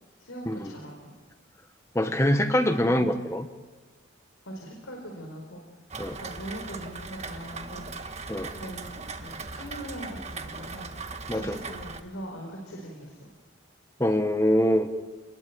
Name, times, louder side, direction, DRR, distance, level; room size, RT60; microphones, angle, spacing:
voice 1, 0.2-1.1 2.0-2.2 2.8-3.1 4.4-5.6 6.2-7.9 8.5-10.9 11.3-13.3, right 1 dB, 85° left, 1 dB, 4.7 m, -41 dB
voice 2, 1.9-3.5 6.0-6.2 8.3-8.5 11.3-11.6 14.0-14.9, equal, 15° left, 7 dB, 1.3 m, -24 dB
Rain, 5.9-12.0, right 3 dB, 35° right, 1.6 m, -39 dB
29.5 x 21.0 x 9.4 m, 1.4 s
head